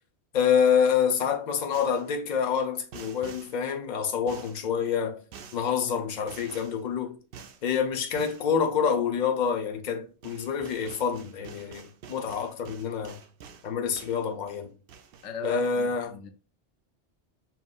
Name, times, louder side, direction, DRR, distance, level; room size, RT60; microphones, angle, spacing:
voice 1, 0.3-5.2 5.5-7.2 7.6-13.2 13.6-14.7 15.4-16.1, left 7 dB, 45° left, 0.7 m, -27 dB
sound 1, 1.7-2.1 2.9-3.6 4.3-4.7 5.3-5.7 6.3-6.8 7.3-7.6 8.1-8.5 9.9-10.0 10.2-13.7 14.0-14.6 14.9-15.3, right 6 dB, 60° right, 0.7 m, -47 dB
voice 2, 15.2-16.3, left 5 dB, 90° left, 0.9 m, -38 dB
5.6 x 2.6 x 2.3 m
omnidirectional pair, 1.2 m